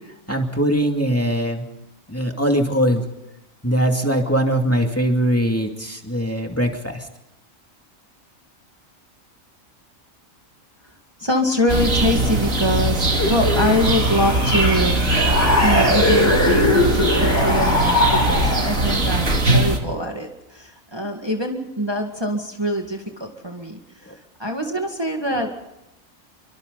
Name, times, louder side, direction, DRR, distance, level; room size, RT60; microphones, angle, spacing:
voice 1, 0.3-1.6 2.1-3.1 3.6-7.1 24.1-24.2, equal, 10° left, 2 dB, 2.5 m, -21 dB
voice 2, 11.2-15.0 15.6-25.7, equal, 20° right, 2 dB, 2.1 m, -24 dB
sound 1, 11.7-19.8, right 2 dB, 75° right, 3.0 m, -20 dB
sound 2, 13.1-19.0, left 2 dB, 50° left, 4.5 m, -21 dB
28.5 x 24.0 x 4.1 m, 0.87 s
omnidirectional pair, 1.4 m